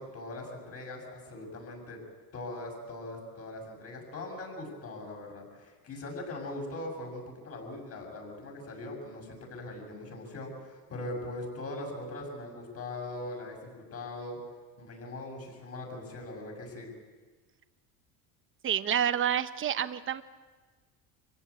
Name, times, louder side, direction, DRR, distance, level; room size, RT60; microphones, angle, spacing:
voice 1, 0.0-2.0 2.3-14.4 14.8-16.9, left 2 dB, 35° left, 1 dB, 7.0 m, -41 dB
voice 2, 18.6-20.2, right 9 dB, 30° right, 11 dB, 1.0 m, -28 dB
26.5 x 16.5 x 8.3 m, 1.4 s
cardioid pair, 140°, 40 cm